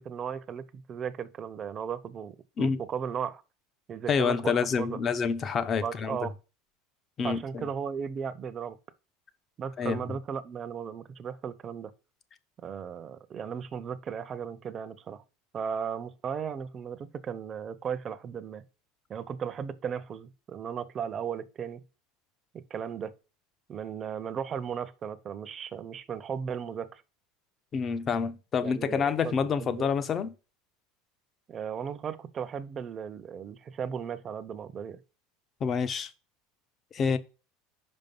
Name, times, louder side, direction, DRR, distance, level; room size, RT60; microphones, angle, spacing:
voice 1, 0.0-3.4 3.9-5.0 5.8-6.3 7.2-8.8 9.6-11.9 12.6-15.2 15.5-18.6 19.1-21.8 22.5-23.1 23.7-27.0 28.6-29.3 29.6-29.9 31.5-35.0, right 7 dB, 35° right, 0.7 m, -36 dB
voice 2, 4.1-6.3 7.2-7.7 9.8-10.2 27.7-30.3 35.6-36.1 36.9-37.2, left 6 dB, 35° left, 0.7 m, -28 dB
5.4 x 5.1 x 5.3 m
supercardioid pair, 120°, 0 cm